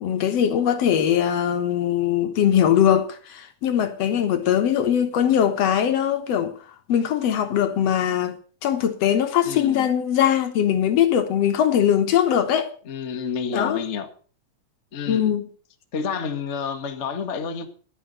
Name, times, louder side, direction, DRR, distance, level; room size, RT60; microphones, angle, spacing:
voice 1, 0.0-6.6 6.9-12.7 13.5-13.8 15.1-15.5, left 9 dB, 65° left, 2.0 m, -21 dB
voice 2, 9.4-9.9 12.9-14.1 14.9-15.3 15.9-17.7, left 6 dB, 35° left, 1.1 m, -29 dB
11.5 x 10.0 x 6.6 m
omnidirectional pair, 3.3 m